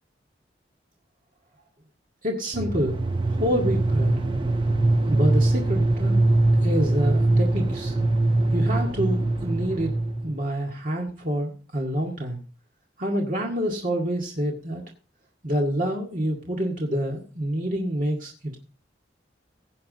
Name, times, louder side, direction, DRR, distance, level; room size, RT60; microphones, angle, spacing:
voice 1, 2.2-3.0 3.3-4.1 5.1-6.2 6.6-7.9 8.5-9.9 10.2-12.4 13.0-14.8 15.4-18.6, equal, 45° right, -1 dB, 2.0 m, -27 dB
sound 1, 2.5-10.4, right 2 dB, 30° right, 0.9 m, -22 dB
16.5 x 8.6 x 4.0 m, 0.38 s
head